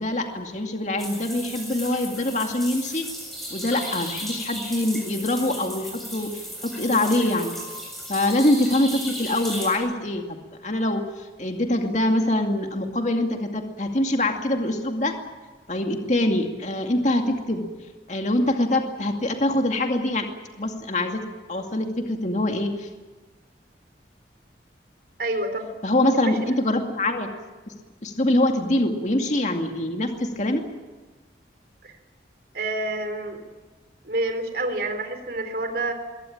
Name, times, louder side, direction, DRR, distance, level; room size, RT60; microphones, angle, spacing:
voice 1, 0.0-3.1 3.5-7.5 8.1-10.4 10.6-15.1 15.7-17.6 18.1-20.3 20.6-21.2 21.5-22.9 25.8-27.3 28.0-30.6, left 1 dB, 40° left, 4 dB, 2.3 m, -24 dB
sound 1, 1.0-9.7, equal, ahead, 7.0 m, -35 dB
voice 2, 25.2-25.7 26.1-26.4 31.8-32.0 32.5-33.4 34.0-35.9, right 2 dB, 55° right, 7 dB, 3.6 m, -28 dB
22.5 x 17.5 x 8.7 m, 1.3 s
head